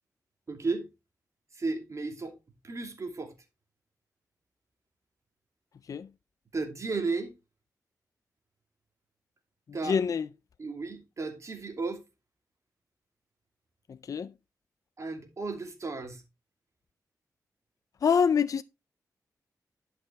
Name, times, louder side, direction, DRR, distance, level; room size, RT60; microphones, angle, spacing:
voice 1, 0.5-0.9 1.5-2.3 2.6-3.3 6.5-7.3 9.7-10.0 10.6-12.0 15.0-16.2, right 3 dB, 50° right, 2.6 m, -34 dB
voice 2, 9.8-10.3 13.9-14.3 18.0-18.6, left 6 dB, 55° left, 0.4 m, -26 dB
11.0 x 6.1 x 3.3 m
cardioid pair, 70°, 7 cm